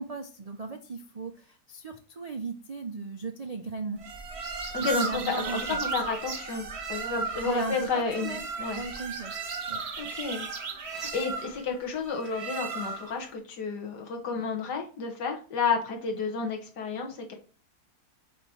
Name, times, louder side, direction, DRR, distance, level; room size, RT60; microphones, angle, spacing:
voice 1, 0.0-1.3 1.7-4.0 4.8-5.8 7.4-8.4 8.7-9.3 9.7-9.8, right 4 dB, 60° right, 4 dB, 0.4 m, -36 dB
sound 1, 4.0-13.2, right 5 dB, 45° right, 1.2 m, -35 dB
voice 2, 4.7-8.8 10.0-10.5 10.9-17.3, left 5 dB, 85° left, 2 dB, 2.0 m, -31 dB
7.9 x 3.1 x 5.6 m, 0.37 s
omnidirectional pair, 1.7 m